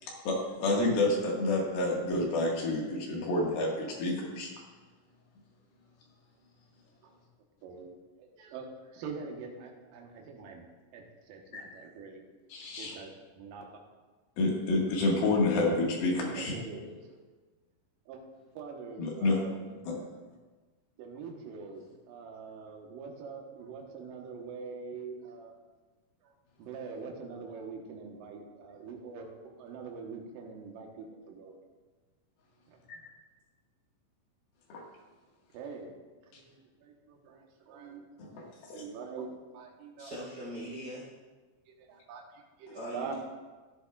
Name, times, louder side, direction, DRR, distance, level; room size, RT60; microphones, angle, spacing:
voice 1, 0.0-4.5 11.5-11.6 12.5-13.0 14.4-16.6 19.0-19.4 19.8-20.0 34.7-34.8 36.3-36.4 38.2-38.8 42.7-42.8, left 2 dB, 75° left, -2 dB, 3.7 m, -29 dB
voice 2, 8.2-8.7 8.9-10.6 10.9-11.0 11.3-12.2 12.8-13.6 16.2-17.0 18.1-18.2 18.6-19.8 21.0-21.8 22.1-25.5 26.6-29.3 29.6-31.6 35.5-36.0 36.3-38.1 38.7-40.1 41.8-42.2 42.6-43.1, right 5 dB, 70° right, 1 dB, 2.8 m, -44 dB
voice 3, 40.0-41.1 42.7-43.1, equal, 30° right, -8 dB, 3.9 m, -40 dB
14.5 x 11.0 x 2.4 m, 1.3 s
omnidirectional pair, 4.4 m